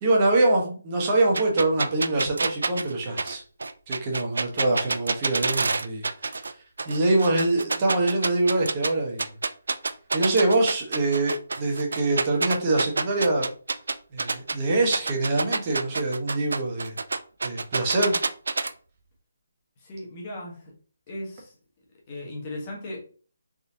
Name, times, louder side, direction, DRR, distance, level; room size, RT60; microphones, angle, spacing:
voice 1, 0.0-3.4 3.9-6.5 6.8-9.3 10.1-13.4 14.1-16.9 17.4-18.1, right 2 dB, 25° right, -1 dB, 1.1 m, -24 dB
sound 1, 1.3-6.5 6.8-8.9 9.2-14.5 14.9-18.7, right 3 dB, 80° right, 0.4 m, -27 dB
voice 2, 19.8-20.7 21.1-21.6 22.1-23.0, left 1 dB, 25° left, -2 dB, 1.3 m, -37 dB
3.9 x 3.7 x 2.8 m, 0.41 s
hypercardioid pair, 165°, 0 cm